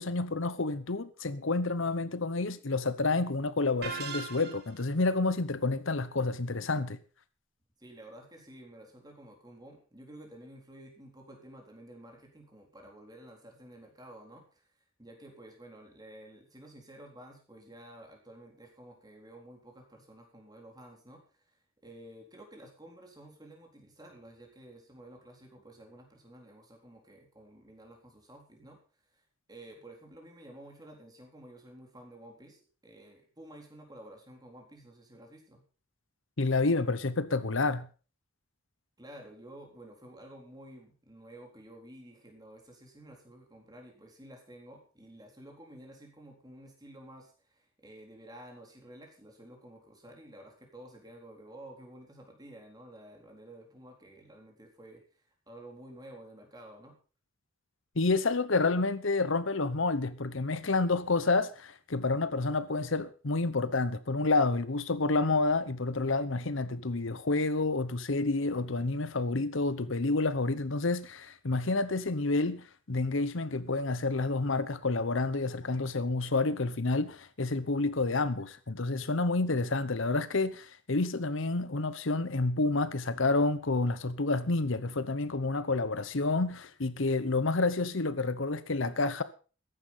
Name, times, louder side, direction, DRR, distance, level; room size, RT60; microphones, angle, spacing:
voice 1, 0.0-7.0 36.4-37.9 58.0-89.2, left 3 dB, 60° left, 0.9 m, -29 dB
sound 1, 3.8-4.9, right 5 dB, 50° right, 2.5 m, -39 dB
voice 2, 7.8-14.7 15.0-28.8 29.1-29.2 29.5-35.6 39.0-57.0, right 1 dB, 20° right, 3.9 m, -51 dB
14.5 x 11.0 x 5.6 m
head